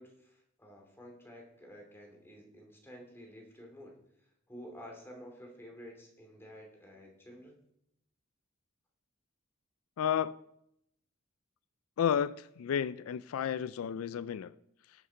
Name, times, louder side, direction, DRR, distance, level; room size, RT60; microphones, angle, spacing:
voice 1, 0.0-3.9 4.5-7.6, equal, 10° left, 2.5 m, -51 dB
voice 2, 10.0-10.4 12.0-14.5, left 8 dB, 90° left, 0.4 m, -32 dB
19.0 x 6.5 x 4.5 m
head